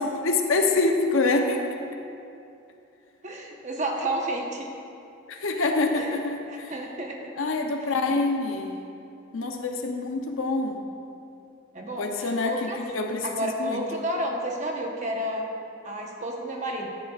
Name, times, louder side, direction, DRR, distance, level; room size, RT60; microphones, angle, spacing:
voice 1, 0.0-1.7 5.3-6.7 7.4-8.8 9.3-10.8 12.0-13.8, left 3 dB, 70° left, 3 dB, 0.7 m, -26 dB
voice 2, 3.2-4.7 5.9-6.2 6.5-7.3 11.7-12.8 13.2-15.5 15.8-16.9, right 1 dB, 35° right, 0 dB, 1.0 m, -31 dB
12.0 x 9.7 x 2.4 m, 2.6 s
head